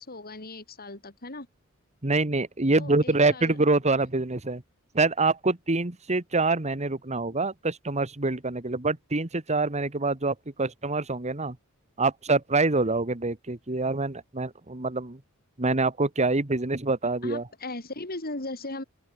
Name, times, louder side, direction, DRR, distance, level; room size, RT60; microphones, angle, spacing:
voice 1, 0.0-1.5 2.8-3.6 17.0-18.8, left 2 dB, 45° left, 5.1 m, -38 dB
voice 2, 2.0-4.6 4.9-11.6 12.0-15.2 15.6-17.4, right 3 dB, 30° right, 1.6 m, -25 dB
open air
head